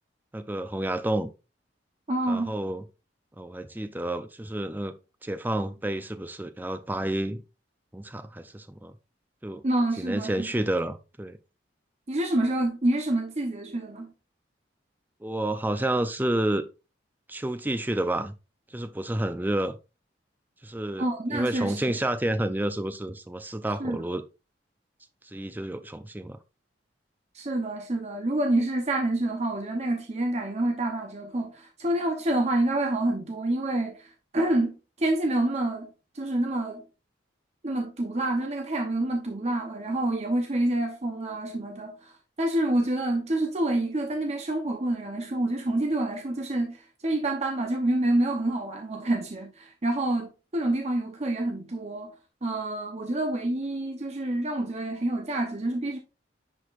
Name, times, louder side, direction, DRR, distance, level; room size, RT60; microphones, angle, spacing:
voice 1, 0.3-1.3 2.3-2.8 3.4-4.9 5.2-7.4 7.9-8.9 9.4-9.6 10.0-11.4 15.2-16.6 17.3-18.3 18.7-19.8 20.6-21.0 21.3-24.2 25.3-26.4, right 1 dB, 10° right, 0.5 m, -30 dB
voice 2, 2.1-2.5 9.6-10.5 12.1-14.1 21.0-21.8 23.8-24.1 27.3-36.8 37.6-52.1 52.4-56.0, right 1 dB, 35° right, 0.8 m, -27 dB
9.8 x 5.0 x 2.5 m
head